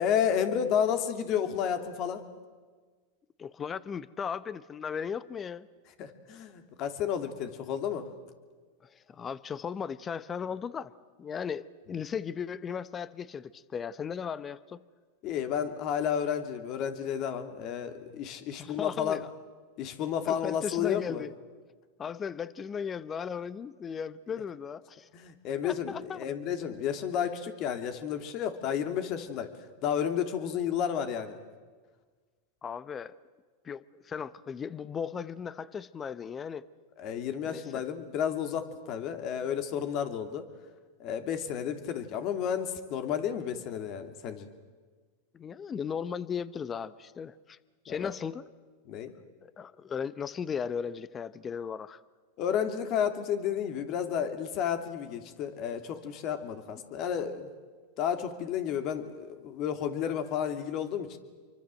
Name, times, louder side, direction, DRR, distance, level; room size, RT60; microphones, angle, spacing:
voice 1, 0.0-2.2 6.0-8.1 15.2-19.2 19.8-21.2 25.1-29.5 29.8-31.4 37.0-40.5 41.0-44.5 47.9-48.1 48.9-49.1 52.4-57.5 58.0-61.2, left 8 dB, 45° left, 8 dB, 2.9 m, -31 dB
voice 2, 3.4-5.7 8.8-10.9 11.2-14.8 18.6-19.3 20.2-21.3 22.0-25.1 25.6-26.3 32.6-33.2 33.6-36.6 37.4-37.8 45.3-47.6 47.8-48.4 49.2-52.0, left 7 dB, 25° left, 17 dB, 0.9 m, -36 dB
28.0 x 24.0 x 7.7 m, 1.5 s
hypercardioid pair, 110°, 0 cm